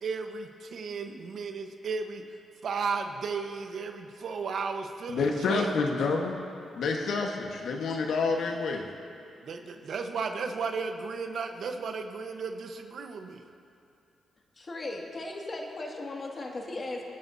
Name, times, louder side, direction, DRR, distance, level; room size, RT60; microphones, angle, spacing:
voice 1, 0.0-2.2 2.6-5.7 9.4-13.5, right 5 dB, 65° right, 5 dB, 1.1 m, -34 dB
voice 2, 5.1-6.3 6.7-8.9, left 4 dB, 75° left, 2 dB, 1.4 m, -28 dB
voice 3, 14.5-17.1, left 2 dB, 40° left, -1 dB, 2.2 m, -37 dB
27.5 x 11.0 x 2.8 m, 2.6 s
cardioid pair, 70°, 0 cm